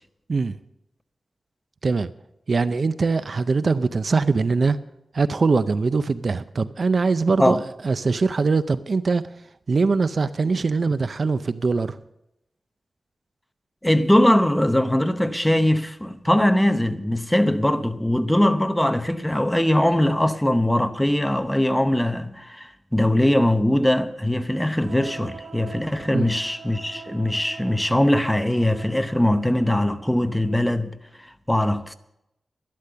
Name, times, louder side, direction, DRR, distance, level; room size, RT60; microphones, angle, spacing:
voice 1, 2.5-4.8 5.1-9.2 9.7-12.0 26.1-26.3, right 4 dB, 50° right, 0.5 m, -22 dB
voice 2, 13.8-31.9, left 1 dB, 5° left, 0.8 m, -21 dB
sound 1, 24.8-30.6, right 5 dB, 85° right, 1.0 m, -43 dB
12.0 x 11.5 x 6.7 m
wide cardioid pair, 105°, 0 cm